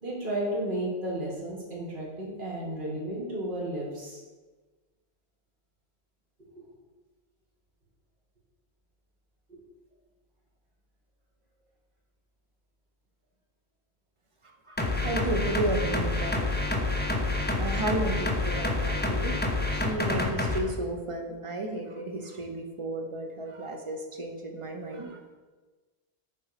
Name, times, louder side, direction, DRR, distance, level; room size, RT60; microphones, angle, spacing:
voice 1, 0.0-4.2 6.4-6.6 9.5-9.6, right 1 dB, 50° right, -5 dB, 2.0 m, -33 dB
voice 2, 14.7-16.4 17.3-19.5 19.7-25.2, right 2 dB, 30° right, 2 dB, 0.9 m, -33 dB
sound 1, 14.8-20.6, left 2 dB, 10° left, 0.6 m, -28 dB
6.8 x 4.4 x 5.0 m, 1.3 s
omnidirectional pair, 1.1 m